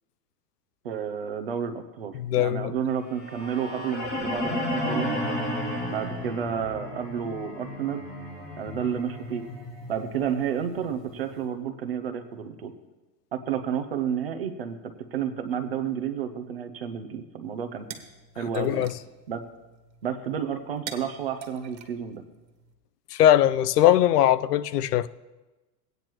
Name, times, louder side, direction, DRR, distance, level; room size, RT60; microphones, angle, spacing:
voice 1, 0.8-5.1 5.9-8.1 8.6-9.5 9.9-12.7 13.3-17.9 18.4-18.9 19.3-19.4 20.0-22.2, right 8 dB, 40° right, 0.5 m, -31 dB
voice 2, 2.1-2.7 18.6-18.9 23.1-25.1, left 12 dB, 70° left, 0.5 m, -21 dB
Space Whirr, 3.1-11.2, left 1 dB, 10° left, 0.6 m, -33 dB
sound 1, 17.4-22.7, right 8 dB, 85° right, 1.5 m, -46 dB
16.0 x 9.2 x 3.0 m
supercardioid pair, 180°, 49 cm